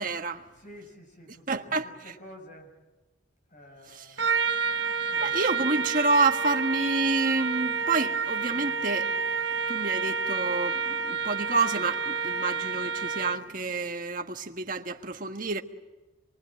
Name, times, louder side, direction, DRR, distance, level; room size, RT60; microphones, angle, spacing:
voice 1, 0.0-0.4 1.5-1.9 5.2-9.1 9.7-15.6, right 3 dB, 45° right, 1.5 m, -28 dB
voice 2, 0.5-2.7 3.5-4.5 5.1-5.3, equal, 40° left, 6.7 m, -49 dB
Trumpet, 4.2-13.5, right 5 dB, 80° right, 1.3 m, -29 dB
27.0 x 23.5 x 9.0 m
head